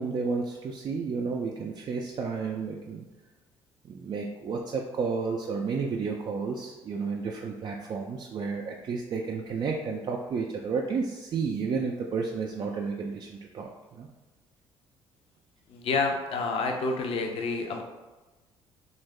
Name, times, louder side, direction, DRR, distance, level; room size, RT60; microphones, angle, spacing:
voice 1, 0.0-3.1 3.9-14.1, right 5 dB, 35° right, 0 dB, 0.3 m, -32 dB
voice 2, 15.7-17.8, left 3 dB, 45° left, 3 dB, 0.5 m, -28 dB
3.3 x 2.3 x 3.2 m, 1.2 s
figure-of-eight pair, 50°, 13 cm